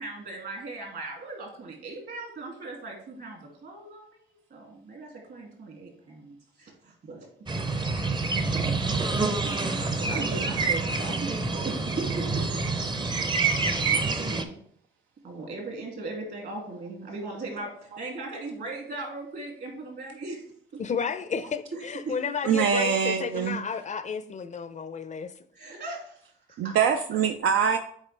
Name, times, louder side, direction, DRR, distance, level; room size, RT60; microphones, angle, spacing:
voice 1, 0.0-7.3 8.7-13.2 13.8-14.5 15.2-20.4 21.7-22.1 25.5-26.2 26.5-26.8, right 3 dB, 55° right, 2.4 m, -38 dB
sound 1, 7.5-14.4, right 3 dB, 25° right, 0.6 m, -27 dB
voice 2, 20.8-25.3, left 6 dB, 40° left, 0.5 m, -32 dB
voice 3, 22.4-23.6 26.6-27.8, right 7 dB, 75° right, 0.5 m, -24 dB
7.3 x 4.4 x 3.3 m
cardioid pair, 90°, 20 cm